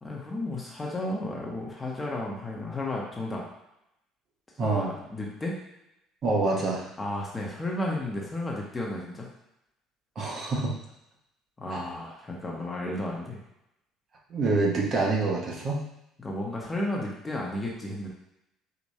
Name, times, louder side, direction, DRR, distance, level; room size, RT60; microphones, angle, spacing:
voice 1, 0.0-3.5 4.6-5.5 7.0-9.3 11.6-13.4 16.2-18.1, left 1 dB, 15° left, -2 dB, 1.0 m, -33 dB
voice 2, 4.6-4.9 6.2-6.9 10.2-10.7 11.7-11.8 14.3-15.8, right 3 dB, 40° right, -2 dB, 0.9 m, -26 dB
4.8 x 2.5 x 4.2 m, 0.84 s
cardioid pair, 135°, 0 cm